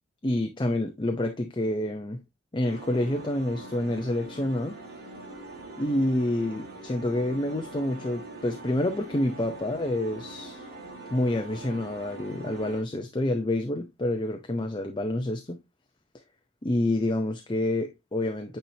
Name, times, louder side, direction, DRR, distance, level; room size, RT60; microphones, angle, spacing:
voice 1, 0.2-2.2 2.5-4.8 5.8-10.7 11.1-15.6 16.6-18.6, left 1 dB, 20° left, 0.6 m, -28 dB
sound 1, 2.6-12.8, right 2 dB, 45° right, 2.4 m, -43 dB
9.0 x 4.2 x 2.7 m
head